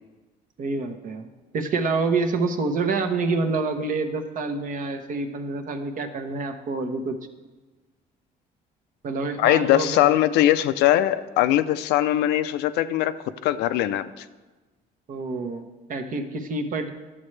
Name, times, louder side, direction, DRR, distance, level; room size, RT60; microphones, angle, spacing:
voice 1, 0.6-1.3 1.5-7.2 9.0-10.1 15.1-16.9, right 3 dB, 50° right, 7 dB, 0.9 m, -27 dB
voice 2, 9.4-13.2 13.4-14.3, left 13 dB, 85° left, 12 dB, 0.5 m, -21 dB
12.0 x 7.4 x 3.2 m, 1.2 s
cardioid pair, 110°, 17 cm